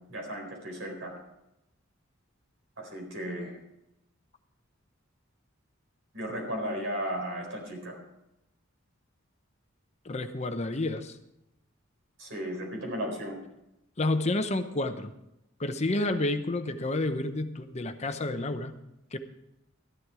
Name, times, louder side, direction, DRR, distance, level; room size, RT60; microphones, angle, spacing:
voice 1, 0.1-1.2 2.8-3.6 6.1-8.0 12.2-13.4, equal, 70° right, 1 dB, 4.2 m, -35 dB
voice 2, 10.0-11.2 14.0-15.1 15.6-18.7 19.1-19.2, left 2 dB, 35° left, 8 dB, 0.8 m, -30 dB
13.5 x 11.0 x 4.8 m, 0.85 s
head